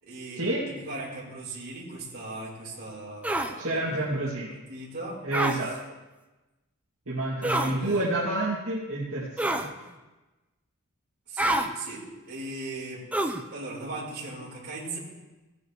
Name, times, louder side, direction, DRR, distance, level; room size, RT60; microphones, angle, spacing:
voice 1, 0.0-4.1 4.5-5.2 7.5-8.1 11.3-13.0 13.5-15.0, right 2 dB, 45° right, -5 dB, 4.4 m, -38 dB
sound 1, 3.2-3.5 5.3-5.6 7.4-7.7 9.4-9.7 11.4-11.7 13.1-13.4, right 1 dB, 5° right, 0.6 m, -26 dB
voice 2, 3.6-4.6 5.2-5.7 7.1-9.7, right 2 dB, 70° right, -9 dB, 2.6 m, -29 dB
18.0 x 9.6 x 3.2 m, 1.1 s
head